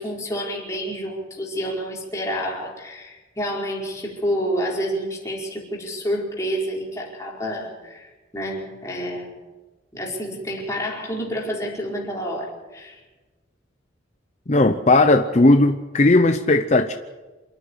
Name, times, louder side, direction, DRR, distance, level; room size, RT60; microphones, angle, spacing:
voice 1, 0.0-9.3 9.9-13.0, equal, 15° left, 4.8 m, -29 dB
voice 2, 14.5-16.9, left 2 dB, 40° left, 0.8 m, -16 dB
27.5 x 9.8 x 9.8 m
head